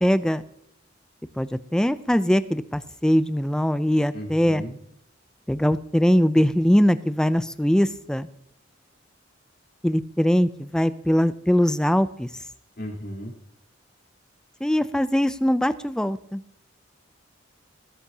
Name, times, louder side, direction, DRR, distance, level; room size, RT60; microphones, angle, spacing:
voice 1, 0.0-0.4 1.4-4.6 5.5-8.3 9.8-12.3 14.6-16.4, equal, 5° left, 13 dB, 0.4 m, -21 dB
voice 2, 4.1-4.7 12.8-13.3, equal, 55° left, -2 dB, 3.5 m, -35 dB
19.5 x 10.0 x 2.8 m, 0.76 s
head